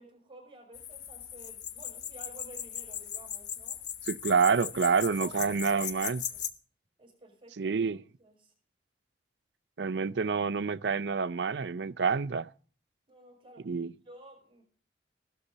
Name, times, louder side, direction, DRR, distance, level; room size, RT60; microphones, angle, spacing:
voice 1, 0.0-3.8 5.0-6.4 7.0-7.8 8.2-8.5 13.1-13.7 14.0-14.6, right 2 dB, 30° right, 5.9 m, -53 dB
sound 1, 0.7-6.5, left 9 dB, 70° left, 1.2 m, -39 dB
voice 2, 4.1-6.2 7.6-8.0 9.8-12.5 13.7-13.9, right 5 dB, 75° right, 0.5 m, -28 dB
16.0 x 13.0 x 4.0 m
head